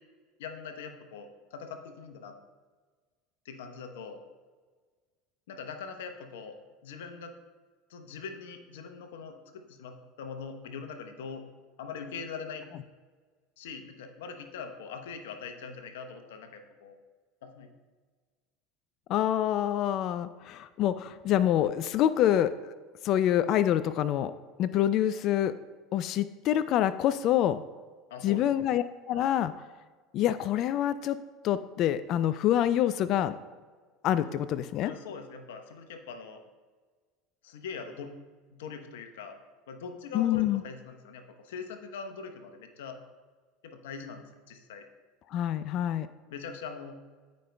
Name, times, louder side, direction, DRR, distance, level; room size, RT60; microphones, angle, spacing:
voice 1, 0.4-2.3 3.4-4.2 5.5-6.5 6.8-7.3 7.9-11.4 11.8-12.6 13.6-17.0 17.4-17.7 28.1-28.4 34.8-36.4 37.4-38.1 38.5-39.4 39.7-43.0 43.6-44.8 46.3-47.0, left 5 dB, 75° left, 6 dB, 0.8 m, -42 dB
voice 2, 19.1-22.7 23.0-24.3 24.6-25.6 25.9-27.6 28.2-29.5 30.1-31.2 31.4-33.4 34.0-34.9 40.1-40.6 45.3-46.1, left 11 dB, 55° left, 14 dB, 0.3 m, -26 dB
14.0 x 5.2 x 2.2 m, 1.4 s
hypercardioid pair, 80°, 0 cm